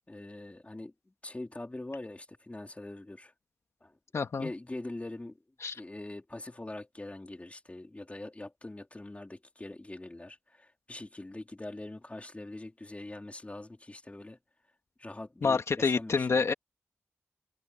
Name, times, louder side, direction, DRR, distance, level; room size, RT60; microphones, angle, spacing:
voice 1, 0.1-0.9 1.2-3.3 3.8-3.9 4.4-5.4 5.7-14.4 15.0-16.5, left 2 dB, 25° left, 4.2 m, -43 dB
voice 2, 4.1-4.5 5.6-5.8 15.4-16.5, left 5 dB, 65° left, 2.1 m, -28 dB
cardioid pair, 45°, 5 cm